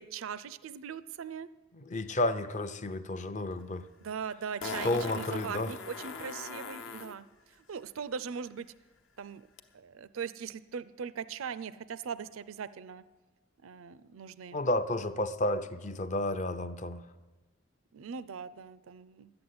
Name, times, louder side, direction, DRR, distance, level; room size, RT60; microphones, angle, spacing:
voice 1, 0.0-1.5 4.0-7.2 7.7-8.7 9.2-9.4 9.7-13.0 13.6-14.6 17.9-19.3, right 6 dB, 75° right, 15 dB, 0.4 m, -40 dB
voice 2, 1.8-3.9 4.8-5.7 14.5-17.0, left 1 dB, 35° left, 10 dB, 0.6 m, -31 dB
Fart, 3.5-3.6 4.6-7.1 9.6-9.7, left 4 dB, 65° left, 1.0 m, -40 dB
11.5 x 7.8 x 9.6 m, 1.2 s
head